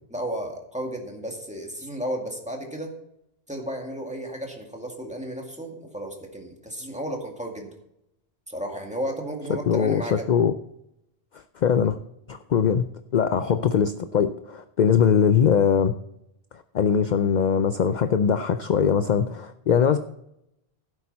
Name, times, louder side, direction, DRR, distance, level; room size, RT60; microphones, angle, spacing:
voice 1, 0.1-2.9 3.5-7.7 8.5-10.3, right 1 dB, 5° right, 1 dB, 2.1 m, -33 dB
voice 2, 9.7-10.5 11.6-12.0 12.3-15.9 16.7-20.0, left 7 dB, 55° left, 10 dB, 0.6 m, -21 dB
16.0 x 8.7 x 4.1 m, 0.81 s
omnidirectional pair, 1.1 m